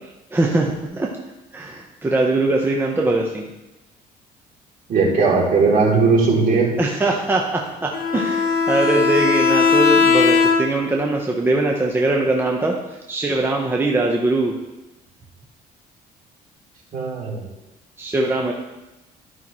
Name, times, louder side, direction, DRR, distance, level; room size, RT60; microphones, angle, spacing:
voice 1, 0.3-1.1 1.5-3.5 6.8-12.8 13.1-14.6 18.0-18.5, right 2 dB, 15° right, -1 dB, 0.9 m, -21 dB
voice 2, 4.9-6.7 16.9-17.4, right 4 dB, 55° right, -4 dB, 3.1 m, -17 dB
Bowed string instrument, 7.9-10.9, left 5 dB, 65° left, 1.4 m, -18 dB
12.0 x 5.7 x 3.1 m, 0.99 s
cardioid pair, 110°, 17 cm